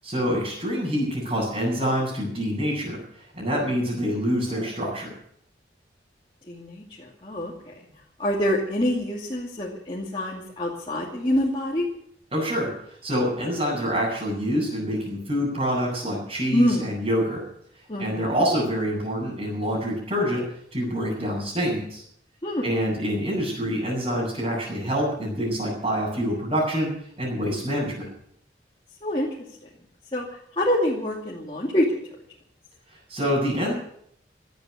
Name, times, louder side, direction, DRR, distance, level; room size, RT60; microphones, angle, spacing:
voice 1, 0.0-3.0 3.3-5.1 12.3-12.7 13.0-17.4 18.0-20.4 20.7-22.0 22.6-26.9 27.2-28.0 33.1-33.7, equal, 35° right, -8 dB, 7.1 m, -26 dB
voice 2, 6.5-7.7 8.2-11.9 16.5-16.9 17.9-18.4 22.4-22.7 29.0-29.3 30.1-30.3 30.6-31.9, left 1 dB, 30° left, -5 dB, 2.5 m, -26 dB
17.0 x 12.5 x 6.6 m, 0.67 s
head